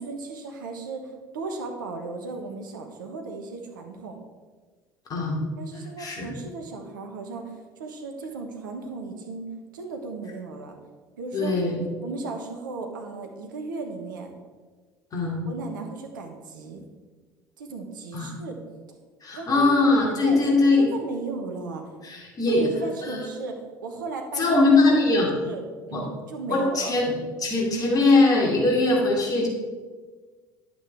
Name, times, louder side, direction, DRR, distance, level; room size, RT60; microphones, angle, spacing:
voice 1, 0.0-4.2 5.6-9.5 9.7-10.8 11.2-11.6 12.0-14.3 15.4-16.8 17.6-18.6 19.3-19.7 20.1-21.8 22.5-24.7 25.1-26.9, right 3 dB, 75° right, 3 dB, 1.2 m, -35 dB
voice 2, 6.0-6.3 11.3-11.7 15.1-15.4 18.1-18.3 19.2-20.9 22.0-22.7 23.0-23.3 24.4-25.3 25.9-26.0 26.5-27.0 27.4-29.5, left 3 dB, 35° left, -2 dB, 2.8 m, -21 dB
9.6 x 7.9 x 3.6 m, 1.4 s
figure-of-eight pair, 65°, 11 cm